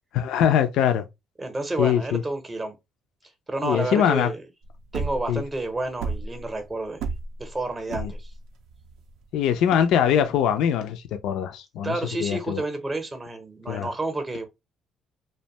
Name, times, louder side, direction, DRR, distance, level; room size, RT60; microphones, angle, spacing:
voice 1, 0.1-1.0 1.8-2.2 3.6-4.3 5.3-5.4 7.9-8.1 9.3-12.6 13.7-13.9, left 9 dB, 80° left, 0.3 m, -22 dB
voice 2, 1.4-2.7 3.5-4.4 4.9-7.0 7.4-8.3 11.8-14.5, right 2 dB, 20° right, 0.6 m, -30 dB
sound 1, 4.6-10.6, right 4 dB, 80° right, 0.4 m, -33 dB
2.5 x 2.2 x 2.8 m
cardioid pair, 90°, 0 cm